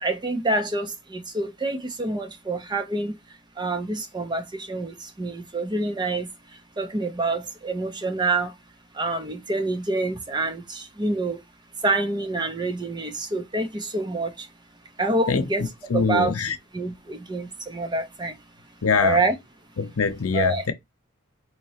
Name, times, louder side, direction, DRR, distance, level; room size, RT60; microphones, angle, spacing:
voice 1, 0.0-3.2 3.6-6.3 6.8-8.5 9.0-11.4 11.8-14.5 15.0-15.7 15.9-16.3 16.7-18.3 19.0-19.3 20.3-20.6, right 2 dB, 20° right, 0.7 m, -27 dB
voice 2, 15.9-16.5 18.8-19.2 19.8-20.7, left 5 dB, 75° left, 0.8 m, -23 dB
4.2 x 2.9 x 2.8 m
head